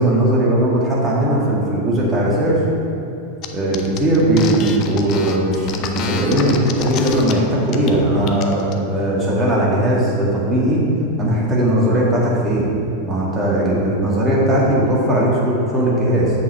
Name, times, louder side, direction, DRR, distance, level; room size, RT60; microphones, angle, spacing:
voice 1, 0.0-2.7 3.5-10.8 11.2-12.7 13.0-16.3, right 1 dB, 20° right, -5 dB, 1.9 m, -18 dB
sound 1, 3.4-3.5 3.7-7.3 7.7-7.9 8.2-8.7, left 7 dB, 35° left, 0.6 m, -27 dB
7.2 x 6.2 x 5.7 m, 2.7 s
figure-of-eight pair, 90°, 0 cm